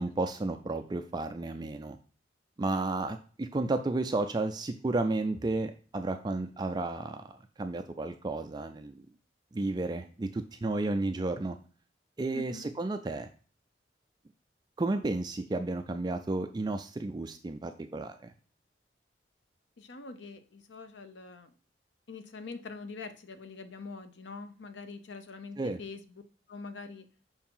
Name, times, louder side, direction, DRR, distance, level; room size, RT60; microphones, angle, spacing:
voice 1, 0.0-2.0 2.6-7.3 7.6-9.1 9.5-11.6 12.2-13.3 14.8-18.3 25.6-25.8, right 2 dB, 25° right, 7 dB, 0.4 m, -32 dB
voice 2, 12.3-12.7 19.8-21.5 22.1-26.0 26.5-27.1, left 4 dB, 80° left, 10 dB, 0.7 m, -44 dB
5.5 x 4.5 x 5.5 m, 0.40 s
head